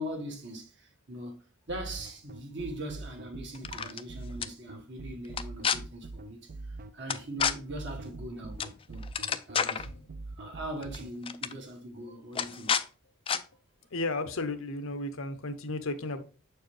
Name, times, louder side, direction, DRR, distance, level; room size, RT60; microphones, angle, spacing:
voice 1, 0.0-8.6 8.9-9.1 9.5-10.1 10.4-12.8, right 1 dB, 60° right, 1.5 m, -41 dB
sound 1, 1.7-11.1, right 3 dB, 45° right, 0.4 m, -43 dB
sound 2, 3.5-4.0 4.4-4.5 5.3-5.8 7.1-7.5 8.6-8.8 9.0-9.9 10.8-11.0 11.2-11.5 12.3-12.8 13.3-13.4, left 7 dB, 25° left, 0.3 m, -29 dB
voice 2, 13.9-16.2, left 2 dB, 75° left, 0.8 m, -33 dB
6.7 x 4.6 x 3.2 m
head